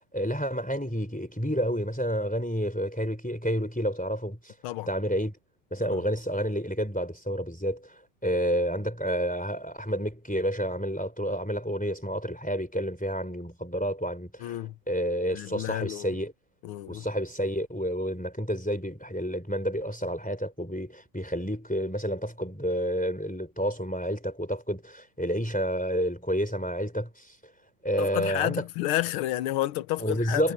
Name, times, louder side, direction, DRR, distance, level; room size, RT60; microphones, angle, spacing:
voice 1, 0.1-4.5 4.9-5.3 5.7-7.9 8.2-14.6 14.9-16.3 16.9-27.3 27.8-28.6 30.0-30.5, equal, 5° left, 3.2 m, -29 dB
voice 2, 14.4-14.7 15.3-16.1 16.6-17.1 28.0-30.5, left 14 dB, 85° left, 1.6 m, -30 dB
omnidirectional pair, 2.3 m